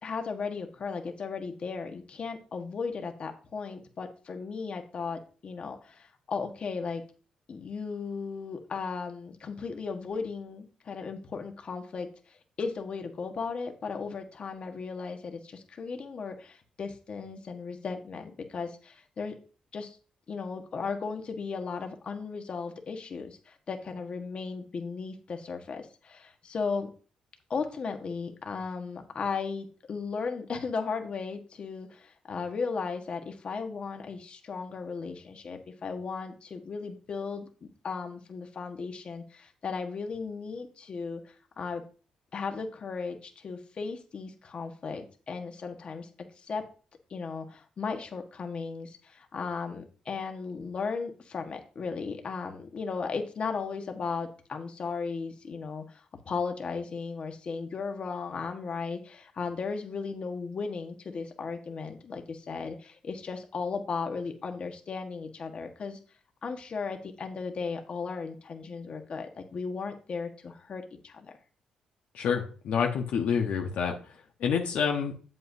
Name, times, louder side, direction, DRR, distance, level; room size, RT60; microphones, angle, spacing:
voice 1, 0.0-7.0 7.5-12.1 12.6-19.3 19.7-20.0 20.3-26.9 27.5-41.8 42.3-46.1 46.4-46.6 47.1-66.0 66.4-71.3, left 5 dB, 50° left, 5 dB, 1.3 m, -36 dB
voice 2, 72.1-74.1 74.4-75.1, left 6 dB, 75° left, 2 dB, 1.0 m, -28 dB
7.7 x 7.6 x 2.7 m, 0.38 s
cardioid pair, 80°, 2 cm